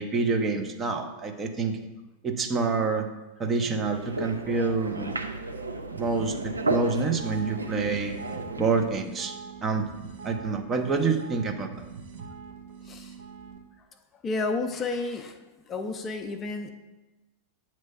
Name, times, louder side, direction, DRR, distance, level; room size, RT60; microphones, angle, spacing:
voice 1, 0.0-1.8 2.2-3.1 3.4-5.2 6.0-8.1 8.6-9.3 9.6-9.9 10.2-11.7, right 4 dB, 20° right, 5 dB, 0.6 m, -27 dB
sound 1, 3.8-8.9, right 2 dB, 80° right, 0.5 m, -33 dB
sound 2, 5.9-13.6, right 5 dB, 50° right, 1.0 m, -43 dB
voice 2, 14.2-15.4 15.7-16.7, left 3 dB, 25° left, 6 dB, 0.5 m, -31 dB
7.9 x 3.2 x 5.3 m, 1.1 s
figure-of-eight pair, 90°, 0 cm